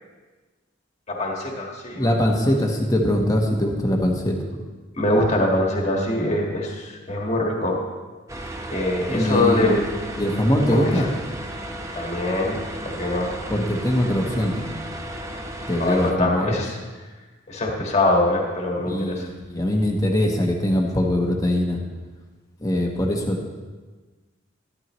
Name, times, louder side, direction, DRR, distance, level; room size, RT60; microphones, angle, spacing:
voice 1, 1.1-2.1 5.0-7.8 8.7-9.8 10.7-11.1 11.9-12.6 12.8-13.3 15.8-16.7 17.5-19.2, left 1 dB, 35° left, -1 dB, 1.7 m, -23 dB
voice 2, 1.9-4.4 9.1-9.8 10.2-11.1 13.5-14.8 15.7-16.6 18.9-21.8 22.6-23.6, left 1 dB, 20° left, 1 dB, 1.2 m, -22 dB
sound 1, 8.3-16.1, right 1 dB, 15° right, 0.8 m, -34 dB
12.5 x 12.5 x 3.1 m, 1.3 s
head